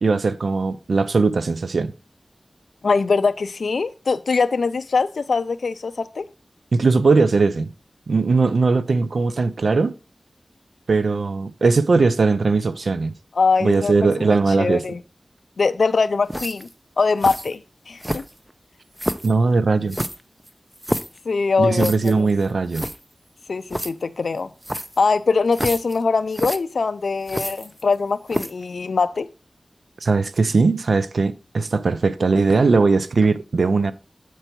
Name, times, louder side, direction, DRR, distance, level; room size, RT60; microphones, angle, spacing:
voice 1, 0.0-1.9 6.7-7.7 8.1-9.9 10.9-13.1 13.6-14.9 19.2-20.0 21.6-22.9 30.0-33.9, right 4 dB, 85° right, 0.4 m, -19 dB
voice 2, 2.8-6.2 13.4-15.0 15.6-16.7 17.0-17.6 17.9-18.2 21.3-22.3 23.5-24.5 25.0-29.3, left 4 dB, 90° left, 0.3 m, -22 dB
sound 1, 16.3-16.7 17.2-17.5 18.0-18.5 19.0-19.3 19.9-21.2 21.8-22.1 22.4-22.5 22.7-23.0 23.7-23.9 24.6-25.0 25.5-26.0 26.3-26.6 27.3-27.9 28.3-28.6, equal, 15° right, 0.6 m, -28 dB
7.8 x 4.5 x 4.4 m
cardioid pair, 45°, 0 cm